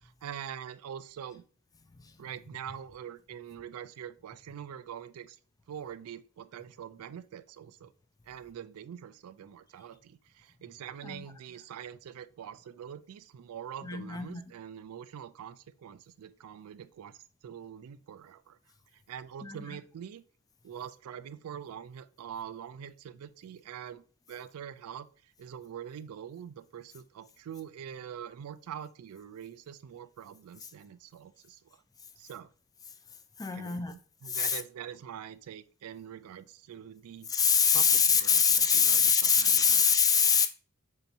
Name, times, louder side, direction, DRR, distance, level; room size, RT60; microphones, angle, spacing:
voice 1, 0.0-1.4 2.2-5.4 5.7-7.9 8.3-17.2 17.4-18.6 18.9-20.2 20.6-24.0 24.3-31.8 32.2-32.5 33.5-37.3 37.7-39.9, right 9 dB, 80° right, 0.3 m, -44 dB
voice 2, 13.8-14.4 19.4-19.6 33.4-33.9 34.3-34.6 37.3-40.5, left 6 dB, 15° left, 0.3 m, -24 dB
3.4 x 2.8 x 4.0 m
head